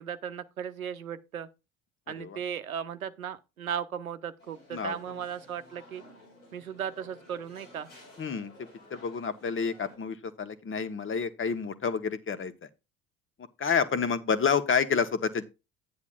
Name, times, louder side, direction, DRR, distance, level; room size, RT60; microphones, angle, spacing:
voice 1, 0.0-1.5 2.1-6.0 6.5-7.9, right 8 dB, 90° right, 0.8 m, -36 dB
sound 1, 4.4-10.0, left 2 dB, 90° left, 4.9 m, -54 dB
voice 2, 8.2-8.5 8.9-12.5 13.6-15.4, left 6 dB, 30° left, 1.2 m, -29 dB
10.5 x 9.6 x 2.5 m
figure-of-eight pair, 55°, 41 cm